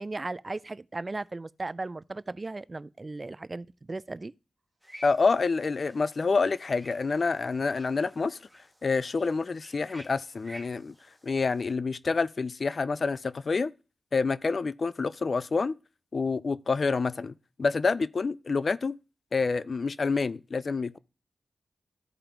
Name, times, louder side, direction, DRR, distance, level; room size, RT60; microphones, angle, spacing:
voice 1, 0.0-4.3, right 2 dB, 35° right, 0.3 m, -36 dB
sound 1, 4.8-11.7, equal, 5° left, 2.0 m, -52 dB
voice 2, 5.0-8.4 8.8-10.9 11.2-13.7 14.1-15.8 16.1-17.3 17.6-19.0 19.3-21.0, left 4 dB, 60° left, 0.4 m, -27 dB
14.5 x 5.0 x 2.9 m
cardioid pair, 50°, 0 cm